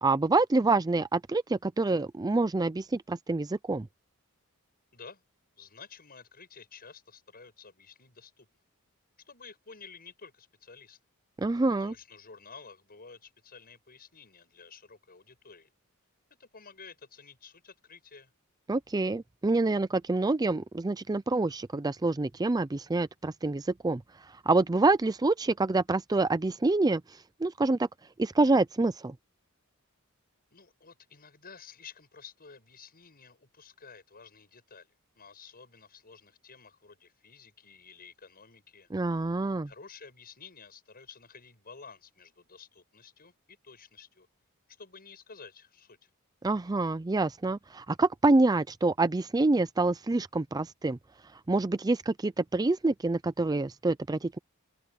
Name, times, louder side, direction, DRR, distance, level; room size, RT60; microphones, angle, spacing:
voice 1, 0.0-3.9 11.4-11.9 18.7-27.9 28.2-29.1 38.9-39.7 46.4-51.0 51.5-54.4, right 3 dB, 20° right, 0.4 m, -27 dB
voice 2, 4.9-5.2 5.6-8.5 9.2-11.0 11.7-15.7 16.4-18.3 30.5-38.9 39.7-44.3 44.8-46.1, left 5 dB, 45° left, 7.8 m, -52 dB
open air
head